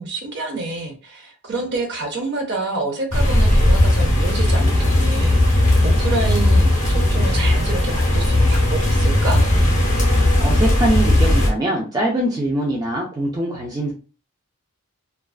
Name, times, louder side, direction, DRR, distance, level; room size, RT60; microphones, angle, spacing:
voice 1, 0.0-9.4, right 2 dB, 50° right, 2 dB, 0.6 m, -28 dB
sound 1, 3.1-11.5, left 1 dB, 35° left, 0.7 m, -17 dB
voice 2, 10.4-13.9, right 1 dB, 20° right, -1 dB, 0.4 m, -22 dB
2.3 x 2.3 x 2.3 m, 0.35 s
head